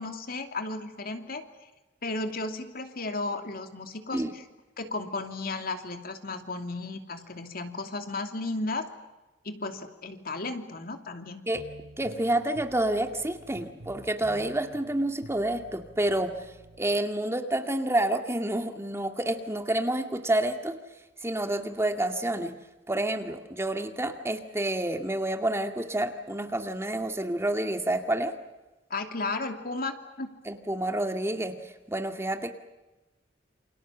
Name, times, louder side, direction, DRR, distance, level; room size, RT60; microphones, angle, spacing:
voice 1, 0.0-1.4 2.0-4.4 4.8-8.9 9.4-11.4 28.9-30.3, left 3 dB, 55° left, 6 dB, 2.8 m, -34 dB
sound 1, 11.5-16.9, right 1 dB, 85° right, 3.5 m, -49 dB
voice 2, 12.0-16.3 16.8-20.8 21.2-22.5 22.9-28.3 30.5-32.5, right 1 dB, 15° right, 6 dB, 2.1 m, -29 dB
29.0 x 27.0 x 7.4 m, 1.1 s
head